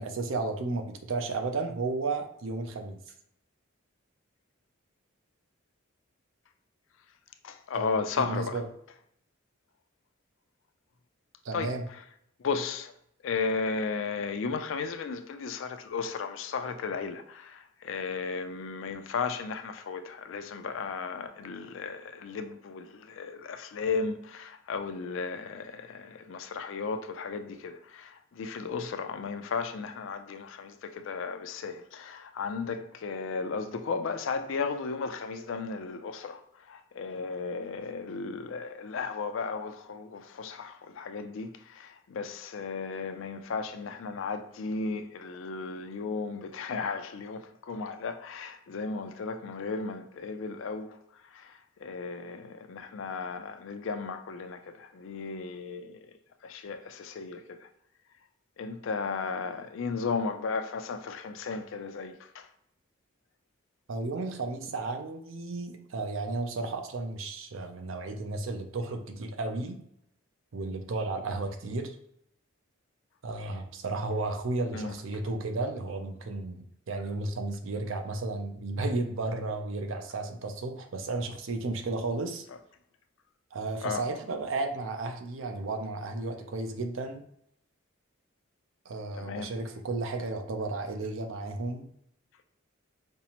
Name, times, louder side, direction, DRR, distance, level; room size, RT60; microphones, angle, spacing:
voice 1, 0.0-3.0 7.7-8.7 11.4-11.8 63.9-69.8 70.5-72.0 73.2-82.5 83.5-87.2 88.9-91.8, right 3 dB, 70° right, 0.5 m, -33 dB
voice 2, 7.4-8.6 11.5-12.0 12.4-12.9 13.2-51.0 51.2-56.1 56.4-57.7 58.6-62.5 74.7-75.0 83.8-84.1 89.2-89.5, left 4 dB, 65° left, 0.4 m, -35 dB
5.2 x 2.0 x 2.9 m
head